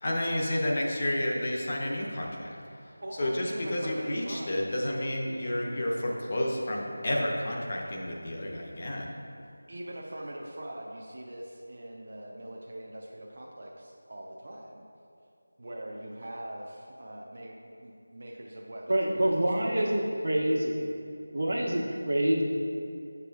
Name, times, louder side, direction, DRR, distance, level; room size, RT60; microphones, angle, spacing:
voice 1, 0.0-2.5 3.2-9.1, left 1 dB, 25° left, -2 dB, 0.6 m, -30 dB
voice 2, 3.0-4.6 5.3-5.4 9.7-14.9 15.6-20.1 20.4-20.7, right 1 dB, 40° right, -2 dB, 0.5 m, -42 dB
voice 3, 18.9-20.8 21.3-22.4, right 1 dB, 85° right, -2 dB, 1.1 m, -26 dB
7.8 x 6.8 x 2.3 m, 2.6 s
figure-of-eight pair, 175°, 0 cm